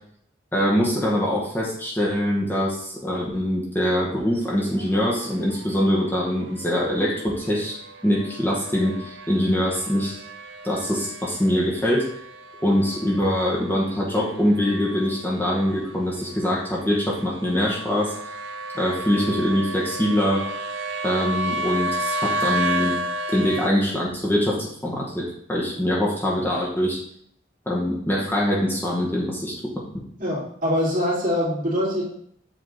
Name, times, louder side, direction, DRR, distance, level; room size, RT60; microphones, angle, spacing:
voice 1, 0.5-7.8 8.0-10.2 10.6-12.1 12.6-18.1 18.7-20.4 21.0-23.0 23.3-27.0 27.7-29.5 29.8-29.9, equal, 10° left, -4 dB, 1.1 m, -23 dB
sound 1, 4.1-23.7, right 1 dB, 80° right, 0.6 m, -33 dB
voice 2, 30.2-32.0, equal, 45° right, -6 dB, 2.6 m, -23 dB
7.8 x 3.6 x 3.7 m, 0.66 s
head